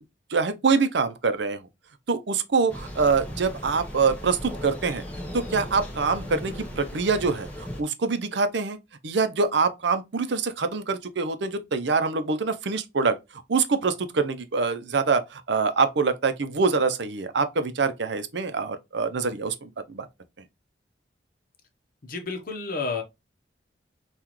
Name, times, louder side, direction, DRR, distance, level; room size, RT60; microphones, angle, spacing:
voice 1, 0.3-1.7 2.1-5.0 5.3-8.8 9.0-20.1, right 4 dB, 65° right, 0.6 m, -25 dB
Thunder, 2.7-7.8, equal, 10° left, 0.9 m, -37 dB
voice 2, 22.0-23.0, left 4 dB, 50° left, 0.9 m, -30 dB
5.7 x 2.4 x 3.0 m
head